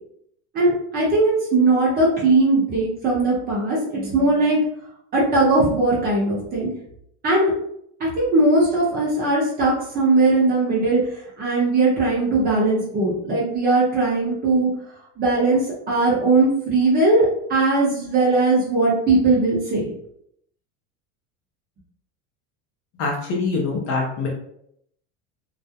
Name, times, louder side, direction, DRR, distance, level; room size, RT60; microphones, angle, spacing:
voice 1, 0.5-4.7 5.1-6.7 7.2-7.5 8.0-11.0 11.4-14.7 15.2-15.6 15.9-17.2 17.5-19.9, right 2 dB, 25° right, -5 dB, 0.8 m, -19 dB
voice 2, 23.0-24.3, left 3 dB, 40° left, -1 dB, 0.5 m, -24 dB
2.3 x 2.0 x 2.7 m, 0.73 s
cardioid pair, 160°, 36 cm